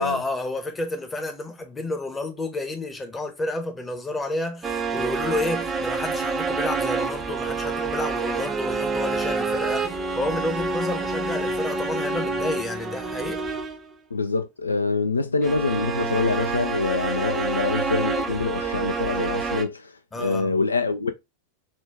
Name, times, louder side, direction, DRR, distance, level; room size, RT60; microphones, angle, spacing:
voice 1, 0.0-9.9 10.2-13.4 20.1-20.5, left 2 dB, 15° left, 0.9 m, -30 dB
cellos down down, 4.6-13.9 15.4-19.6, right 4 dB, 20° right, 0.6 m, -27 dB
voice 2, 14.1-21.1, left 4 dB, 75° left, 0.3 m, -25 dB
4.3 x 2.3 x 3.4 m
figure-of-eight pair, 90°, 0 cm